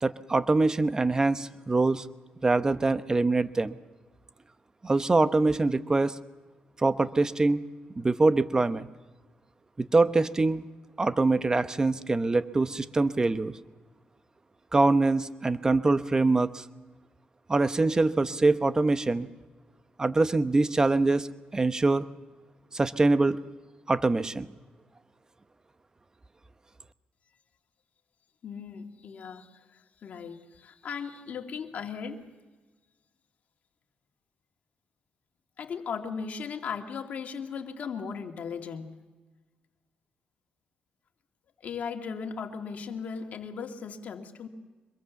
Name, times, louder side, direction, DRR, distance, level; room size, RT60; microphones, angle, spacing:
voice 1, 0.0-2.1 2.4-3.7 4.8-6.2 6.8-7.6 8.0-8.9 9.8-10.6 11.0-13.5 14.7-16.6 17.5-19.3 20.0-21.3 21.5-22.1 22.7-23.4 23.9-24.5, right 3 dB, 20° right, 12 dB, 0.9 m, -24 dB
voice 2, 28.4-32.2 35.6-38.9 41.6-44.5, left 6 dB, 60° left, 4 dB, 2.2 m, -37 dB
25.0 x 22.0 x 7.1 m, 1.3 s
cardioid pair, 95°, 3 cm